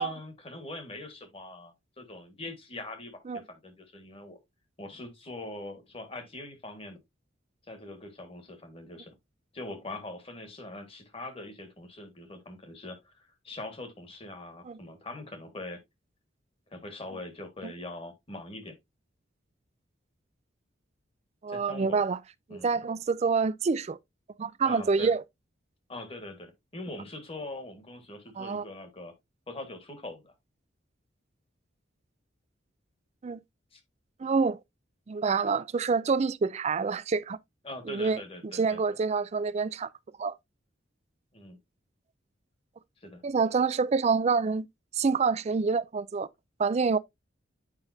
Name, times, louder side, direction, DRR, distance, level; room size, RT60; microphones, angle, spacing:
voice 1, 0.0-3.2 3.5-4.4 4.8-7.0 7.7-9.2 9.5-13.1 13.4-15.8 16.7-18.8 21.5-22.0 22.5-22.7 24.6-25.1 25.9-29.1 29.5-30.3 33.7-33.8 37.6-38.8 41.3-41.6 43.0-43.2, left 2 dB, 30° left, 1.6 m, -42 dB
voice 2, 21.4-22.2 22.5-24.0 24.4-25.2 28.4-28.6 33.2-33.4 34.2-34.6 35.1-37.4 37.9-38.2 38.5-39.9 40.2-40.3 43.2-44.7 45.0-46.3 46.6-47.0, right 5 dB, 35° right, 0.4 m, -27 dB
8.9 x 5.2 x 2.6 m
head